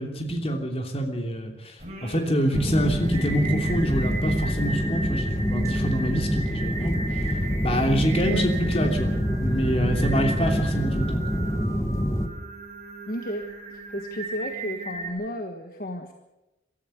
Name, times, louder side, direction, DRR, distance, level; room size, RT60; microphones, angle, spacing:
voice 1, 0.0-1.8 2.0-7.0 7.6-11.2, equal, 35° left, 3 dB, 3.1 m, -26 dB
Singing, 1.8-15.1, right 3 dB, 35° right, 5.6 m, -37 dB
sound 1, 2.5-12.3, equal, 15° left, 1.5 m, -26 dB
voice 2, 13.1-13.4 13.7-16.1, equal, 50° left, 4 dB, 1.5 m, -33 dB
23.5 x 13.5 x 8.1 m, 1.0 s
head